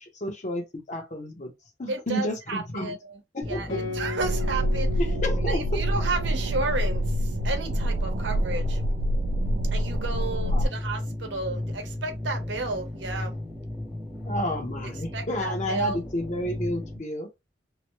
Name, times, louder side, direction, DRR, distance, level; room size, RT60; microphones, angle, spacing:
voice 1, 0.0-1.5 1.8-3.0 3.3-3.8 5.0-5.8 10.5-10.7 14.2-17.3, equal, 45° left, 0.9 m, -31 dB
voice 2, 1.9-3.2 3.5-4.9 5.5-8.8 9.7-13.3 15.1-16.0, right 3 dB, 80° right, 0.8 m, -32 dB
sound 1, 3.4-17.0, left 1 dB, 5° right, 0.7 m, -35 dB
Guitar, 3.7-8.6, left 4 dB, 70° left, 1.0 m, -39 dB
sound 2, 4.2-10.7, equal, 60° right, 0.3 m, -26 dB
3.0 x 2.1 x 3.0 m
head